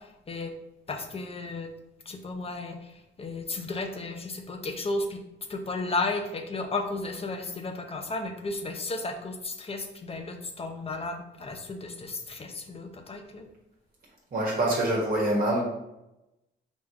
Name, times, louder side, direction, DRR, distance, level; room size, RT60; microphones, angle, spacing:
voice 1, 0.9-1.7 2.1-2.9 3.2-5.2 5.5-13.5, left 3 dB, 30° left, 4 dB, 0.7 m, -33 dB
voice 2, 14.3-15.6, right 1 dB, 45° right, -3 dB, 1.3 m, -25 dB
3.6 x 2.6 x 4.7 m, 0.90 s
cardioid pair, 90°, 20 cm